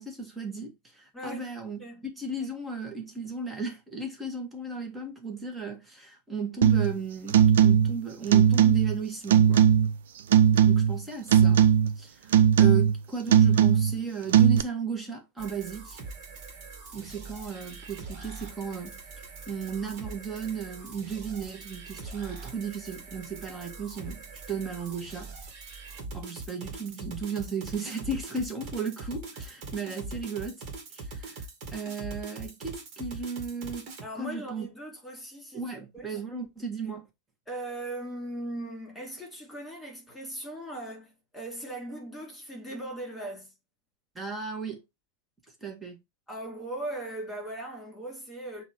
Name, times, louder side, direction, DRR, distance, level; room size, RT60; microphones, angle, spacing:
voice 1, 0.0-1.8 2.2-9.6 10.7-11.7 12.0-12.3 12.6-16.0 16.9-19.0 19.5-25.3 26.1-30.6 30.9-31.4 31.7-33.9 34.2-34.7 35.5-37.1 44.1-44.8 45.6-46.0, right 5 dB, 15° right, 1.7 m, -35 dB
voice 2, 1.1-1.5 1.8-2.0 34.0-36.2 37.5-43.5 46.3-48.6, right 1 dB, 5° left, 4.1 m, -39 dB
sound 1, 6.6-7.0 7.3-8.0 8.3-9.0 9.3-10.0 10.3-11.0 11.3-12.0 12.3-13.0 13.3-14.0 14.3-14.6, right 9 dB, 60° right, 0.5 m, -19 dB
sound 2, 15.4-34.0, right 3 dB, 40° right, 2.0 m, -42 dB
7.1 x 2.8 x 4.8 m
figure-of-eight pair, 90°, 0 cm